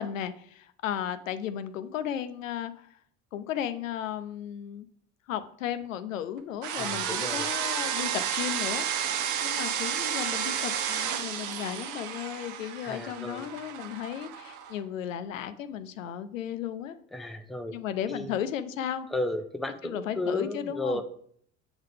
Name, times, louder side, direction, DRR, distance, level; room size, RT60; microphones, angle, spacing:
voice 1, 0.0-2.9 3.3-4.9 5.3-17.0 17.7-19.1 19.8-21.0, left 10 dB, 85° left, 11 dB, 0.5 m, -35 dB
sound 1, 6.6-14.7, right 9 dB, 50° right, 0.7 m, -32 dB
voice 2, 6.8-7.5 12.8-13.5 17.1-17.7 18.1-18.3 19.1-21.0, left 2 dB, ahead, 7 dB, 0.5 m, -33 dB
7.9 x 3.9 x 3.3 m, 0.62 s
hypercardioid pair, 65°, 38 cm